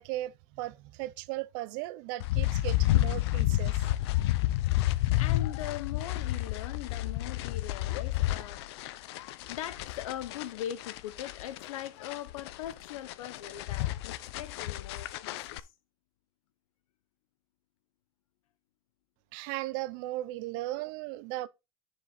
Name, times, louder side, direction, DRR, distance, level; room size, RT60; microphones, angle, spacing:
voice 1, 0.0-3.8 19.3-21.5, right 17 dB, 35° right, 0.4 m, -37 dB
sound 1, 2.2-15.6, left 16 dB, 50° left, 0.5 m, -30 dB
voice 2, 5.2-8.6 9.5-15.7, left 11 dB, 75° left, 1.0 m, -41 dB
10.0 x 5.0 x 3.9 m
supercardioid pair, 180°, 18 cm